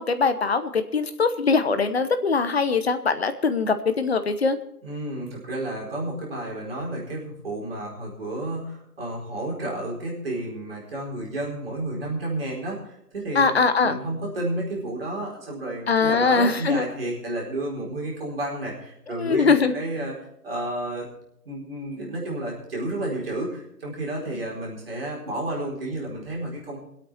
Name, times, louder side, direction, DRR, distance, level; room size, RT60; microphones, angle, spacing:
voice 1, 0.0-4.6 13.3-14.0 15.9-16.9 19.1-19.7, left 4 dB, 40° left, 10 dB, 1.0 m, -22 dB
voice 2, 4.8-13.5 13.8-20.2 20.4-21.1 21.4-26.8, right 1 dB, 35° right, -3 dB, 4.7 m, -31 dB
23.0 x 8.8 x 4.4 m, 0.75 s
figure-of-eight pair, 150°, 46 cm